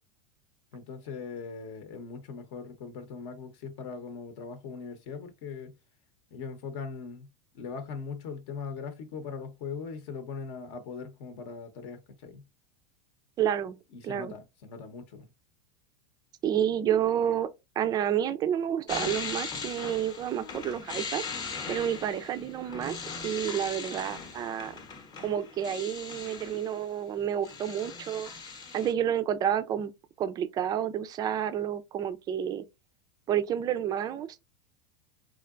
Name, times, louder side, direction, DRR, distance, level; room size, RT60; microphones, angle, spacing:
voice 1, 0.7-5.7 6.3-7.3 7.5-12.4 13.9-15.3, left 5 dB, 55° left, 0.8 m, -40 dB
voice 2, 13.4-13.8 14.0-14.3 16.4-17.5 17.8-21.2 21.7-23.0 23.2-24.7 25.2-28.3 28.7-29.9 30.2-32.6 33.3-34.4, right 9 dB, 25° right, 0.3 m, -29 dB
sound 1, 18.9-26.9 27.2-28.9, left 5 dB, 25° left, 0.8 m, -39 dB
3.7 x 3.3 x 2.4 m
supercardioid pair, 145°, 17 cm